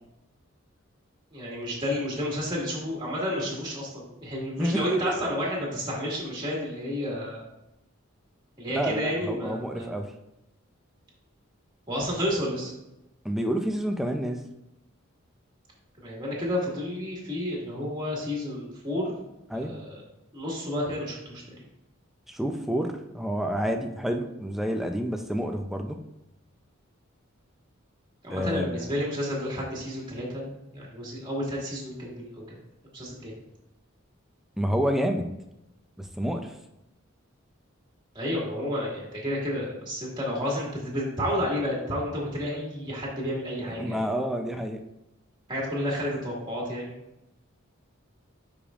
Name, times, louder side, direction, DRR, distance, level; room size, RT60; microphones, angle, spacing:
voice 1, 1.3-7.4 8.6-10.0 11.9-12.7 16.0-19.2 19.5-20.0 20.3-21.7 28.2-32.6 32.9-33.4 38.1-44.0 45.5-46.9, equal, 20° right, -4 dB, 2.0 m, -31 dB
voice 2, 4.6-5.3 8.7-10.1 13.2-14.5 19.5-19.7 22.3-26.0 28.3-28.9 34.6-35.3 36.0-36.5 43.8-44.8, equal, ahead, 4 dB, 0.5 m, -29 dB
9.9 x 5.0 x 2.5 m, 0.91 s
head